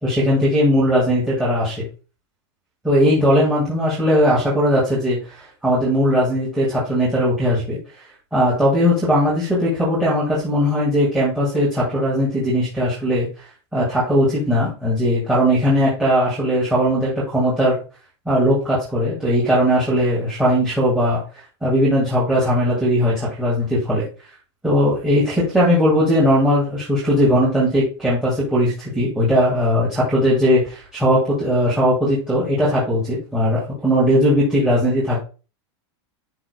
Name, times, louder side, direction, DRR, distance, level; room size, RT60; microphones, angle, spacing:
voice 1, 0.0-1.9 2.8-7.8 8.3-13.4 13.7-17.8 18.3-24.1 24.6-35.2, equal, 5° right, -9 dB, 2.0 m, -19 dB
11.0 x 3.8 x 2.3 m, 0.34 s
supercardioid pair, 165°, 15 cm